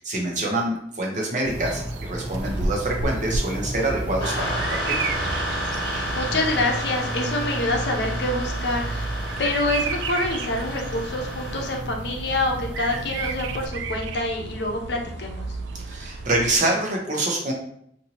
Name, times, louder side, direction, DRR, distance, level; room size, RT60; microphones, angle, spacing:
voice 1, 0.0-5.0 15.8-17.5, right 2 dB, 45° right, -1 dB, 0.7 m, -26 dB
sound 1, 1.4-13.7, right 1 dB, 10° right, 0.5 m, -36 dB
Bird vocalization bird call bird song, 1.5-16.6, right 3 dB, 85° right, 0.3 m, -32 dB
sound 2, 4.2-11.8, equal, 30° left, 1.3 m, -31 dB
voice 2, 5.9-9.1 9.4-15.5, left 2 dB, 70° left, 1 dB, 0.6 m, -26 dB
2.7 x 2.6 x 2.8 m, 0.69 s
head